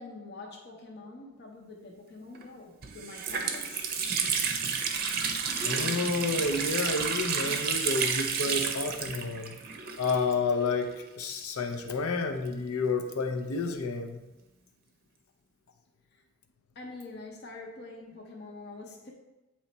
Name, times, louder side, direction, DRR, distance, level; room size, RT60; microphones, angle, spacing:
voice 1, 0.0-3.9 16.1-16.2 16.7-19.1, left 3 dB, 45° left, 0 dB, 0.8 m, -45 dB
Water tap faucet, 2.3-2.4 2.8-10.6 10.8-10.9 11.7-13.3, right 6 dB, 45° right, 0.6 m, -31 dB
voice 2, 5.2-9.5 10.0-10.9 11.2-14.2, left 3 dB, 80° left, 6 dB, 0.7 m, -30 dB
8.2 x 3.1 x 4.3 m, 1.0 s
head